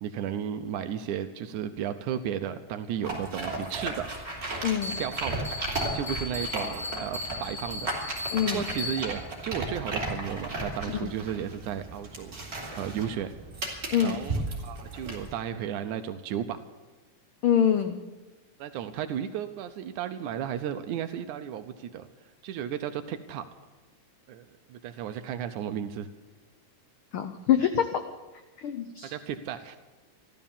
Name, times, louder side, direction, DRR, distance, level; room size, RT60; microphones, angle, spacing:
voice 1, 0.0-4.1 4.8-7.9 8.5-13.3 14.0-16.6 18.6-22.1 22.4-23.5 24.3-26.1 29.0-29.8, right 9 dB, 85° right, 9 dB, 2.2 m, -34 dB
sound 1, 3.0-15.3, right 2 dB, 30° right, 3.6 m, -35 dB
voice 2, 4.6-5.0 8.3-8.7 10.9-11.1 13.9-14.2 17.4-18.0 27.1-28.0 28.6-29.1, left 9 dB, 75° left, 8 dB, 1.2 m, -25 dB
Bell, 4.8-9.3, left 3 dB, 15° left, 4.4 m, -37 dB
15.0 x 13.0 x 7.1 m, 1.2 s
omnidirectional pair, 3.4 m